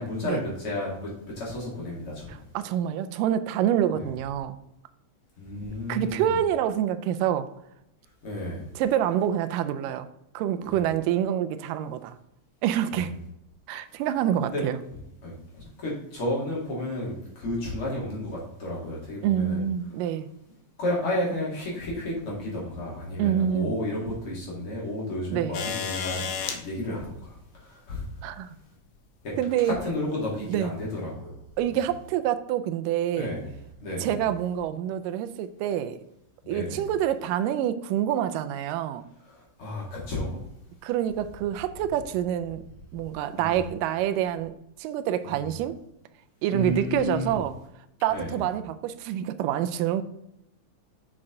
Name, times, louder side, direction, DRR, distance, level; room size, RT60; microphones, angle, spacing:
voice 1, 0.0-2.4 3.9-4.1 5.4-6.3 8.2-8.7 12.9-13.1 14.5-14.6 15.2-19.6 20.8-28.0 29.2-29.3 29.6-31.4 33.1-33.5 33.8-34.2 36.4-36.9 39.3-40.4 43.4-43.7 45.2-45.5 46.5-47.4 48.1-48.4, left 1 dB, 45° left, -5 dB, 3.0 m, -32 dB
voice 2, 2.3-4.6 5.9-7.5 8.8-10.1 10.3-12.2 12.6-13.1 13.7-14.8 19.2-20.3 23.2-23.7 25.3-25.6 28.2-28.6 29.4-29.8 30.5-30.7 31.6-33.3 34.0-36.0 36.5-39.1 40.8-42.6 42.9-45.7 46.4-47.6 48.0-50.0, right 10 dB, 85° right, 11 dB, 2.2 m, -27 dB
sound 1, 25.5-26.6 28.0-28.1 29.4-29.7 30.6-30.7, left 7 dB, 75° left, 1.5 m, -32 dB
7.5 x 6.0 x 3.8 m, 0.80 s
omnidirectional pair, 3.8 m